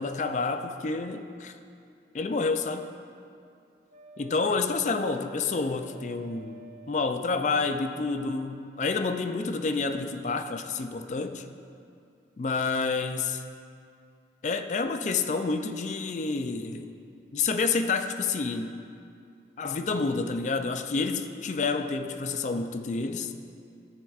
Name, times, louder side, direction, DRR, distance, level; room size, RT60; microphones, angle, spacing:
voice 1, 0.0-1.5 2.1-2.9 4.2-11.4 12.4-13.4 14.4-16.9 17.3-18.7 19.6-23.3, left 4 dB, 40° left, 7 dB, 0.3 m, -29 dB
Wind instrument woodwind instrument, 3.9-8.1, right 5 dB, 40° right, 0.8 m, -51 dB
13.5 x 7.1 x 2.4 m, 2.4 s
head